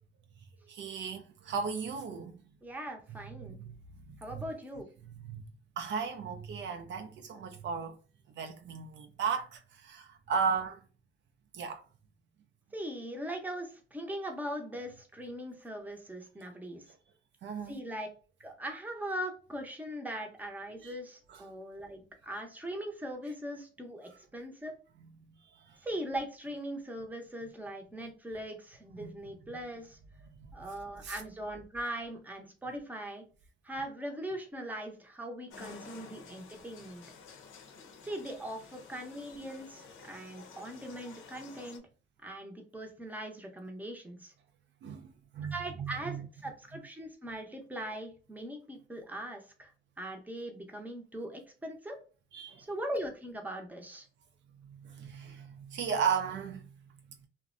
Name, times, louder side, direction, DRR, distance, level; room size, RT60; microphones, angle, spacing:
voice 1, 0.7-2.3 3.1-3.7 4.1-4.5 5.2-5.5 5.8-8.0 8.3-10.8 11.5-11.8 17.4-17.8 20.8-21.0 21.3-21.4 25.5-25.8 29.0-29.1 31.0-31.2 44.8-46.2 52.3-52.6 54.6-56.7, right 6 dB, 65° right, 0.4 m, -36 dB
voice 2, 2.6-3.6 4.2-4.9 12.7-16.9 17.7-18.1 18.4-24.7 25.8-30.0 30.5-33.2 33.6-37.0 38.0-41.8 42.2-44.3 45.5-49.7 50.0-52.0 52.7-54.1, right 1 dB, 10° right, 0.6 m, -40 dB
sound 1, 35.5-41.8, left 5 dB, 85° left, 0.6 m, -51 dB
2.5 x 2.1 x 2.4 m
cardioid pair, 90°, 20 cm